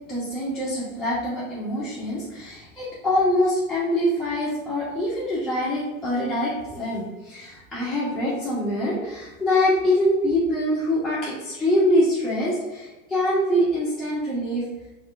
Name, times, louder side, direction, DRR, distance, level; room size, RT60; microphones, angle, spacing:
voice 1, 0.1-14.6, left 1 dB, ahead, -12 dB, 1.1 m, -24 dB
4.7 x 2.4 x 4.1 m, 1.1 s
supercardioid pair, 140°, 38 cm